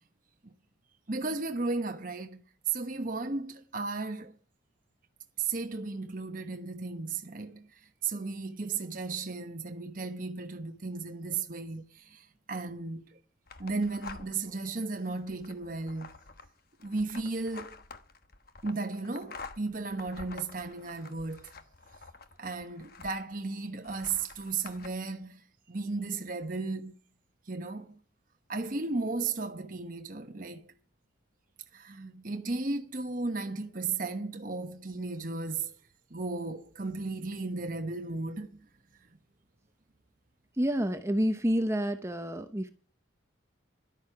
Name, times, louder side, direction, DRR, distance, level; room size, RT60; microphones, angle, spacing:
voice 1, 1.1-4.4 5.4-7.7 8.0-13.2 13.6-16.1 16.8-17.8 18.6-21.5 22.4-26.9 27.5-28.0 28.5-30.7 31.7-35.7 36.1-38.6, right 3 dB, 40° right, 1.1 m, -35 dB
sound 1, 13.5-14.5 15.0-23.4 23.8-24.9, left 4 dB, 50° left, 1.1 m, -48 dB
voice 2, 40.6-42.7, equal, 15° right, 0.8 m, -28 dB
13.0 x 11.5 x 5.9 m
head